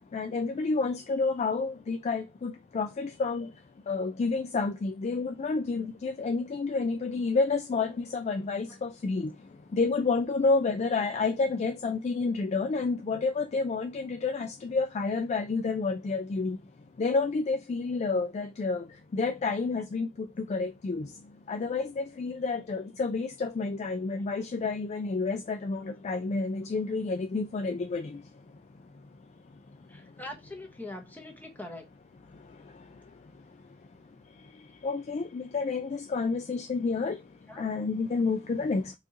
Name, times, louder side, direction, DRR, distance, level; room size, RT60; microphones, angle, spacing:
voice 1, 0.1-3.5 3.9-9.3 9.7-16.6 17.0-18.8 19.1-21.1 21.5-28.2 34.8-37.2 37.6-38.9, left 4 dB, 35° left, 0.3 m, -29 dB
voice 2, 29.9-31.9 37.5-37.6, left 1 dB, 10° left, 0.9 m, -42 dB
4.7 x 2.5 x 2.7 m
head